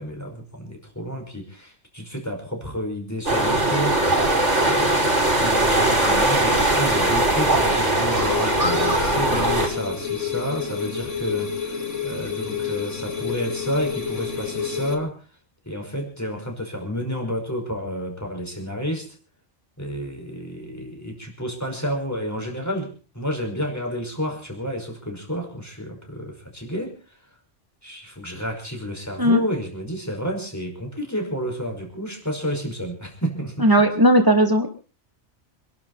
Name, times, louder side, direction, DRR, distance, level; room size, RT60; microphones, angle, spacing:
voice 1, 0.0-4.4 4.6-15.2 15.7-19.1 19.8-27.2 27.8-33.7, equal, 15° left, 2 dB, 5.6 m, -30 dB
sound 1, 3.3-9.7, right 1 dB, 80° right, 6.3 m, -20 dB
sound 2, 8.2-15.0, left 7 dB, 85° left, 2.5 m, -29 dB
voice 2, 33.6-34.7, equal, 15° right, 5 dB, 2.6 m, -16 dB
27.5 x 12.0 x 4.2 m, 0.37 s
omnidirectional pair, 1.2 m